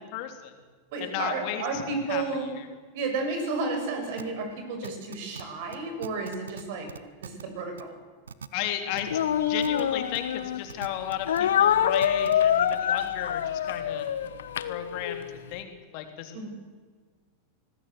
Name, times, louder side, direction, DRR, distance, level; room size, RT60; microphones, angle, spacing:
voice 1, 0.1-0.5 1.0-1.6 2.1-2.2 8.5-9.1 9.5-14.1 14.7-15.2 15.5-16.5, left 11 dB, 45° left, 6 dB, 3.7 m, -34 dB
voice 2, 0.9-2.6 2.9-6.9 7.2-8.0 16.3-16.5, right 3 dB, 50° right, 5 dB, 6.7 m, -32 dB
sound 1, 4.2-4.3 4.8-5.4 5.7-5.8 6.0-6.6 6.9-7.4 7.8-7.9 8.3-8.5 9.0-9.1 9.6-9.8 10.1-10.2 10.7-11.4 12.0-12.3, right 7 dB, 70° right, 1.1 m, -40 dB
Speech, 9.1-10.6 11.3-15.3, left 9 dB, 60° left, 1.3 m, -25 dB
25.5 x 20.0 x 8.0 m, 1.5 s
figure-of-eight pair, 90°, 0 cm